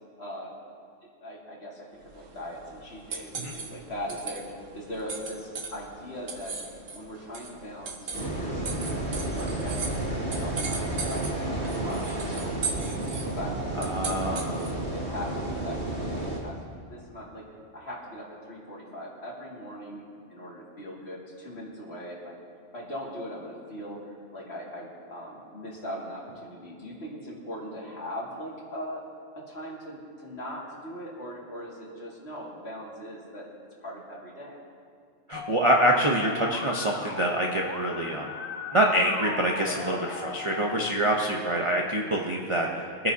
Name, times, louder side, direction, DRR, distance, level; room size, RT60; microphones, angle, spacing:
voice 1, 0.2-0.6 1.2-6.6 6.9-12.5 12.8-14.5 14.9-17.4 17.7-22.4 22.7-29.0 29.3-33.5 33.8-34.6 41.6-41.8, equal, 55° left, -4 dB, 2.5 m, -40 dB
sound 1, 2.0-14.9, right 4 dB, 80° right, 1.5 m, -39 dB
sound 2, 8.1-16.4, right 1 dB, 60° right, 3.0 m, -31 dB
voice 2, 13.9-14.7 35.3-38.3 38.7-43.1, right 1 dB, 30° right, -1 dB, 0.7 m, -26 dB
Musical instrument, 35.3-40.9, left 6 dB, 90° left, 1.1 m, -38 dB
24.0 x 9.3 x 2.8 m, 2.2 s
omnidirectional pair, 1.3 m